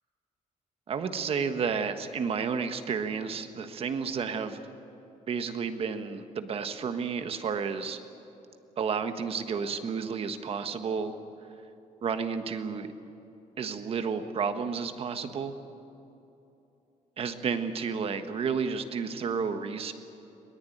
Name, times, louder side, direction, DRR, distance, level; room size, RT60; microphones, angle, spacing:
voice 1, 0.9-4.6 5.3-8.0 8.8-11.1 12.0-12.9 13.6-15.5 17.2-19.9, right 6 dB, 45° right, 8 dB, 1.5 m, -31 dB
21.5 x 19.5 x 9.3 m, 2.9 s
cardioid pair, 150°, 13 cm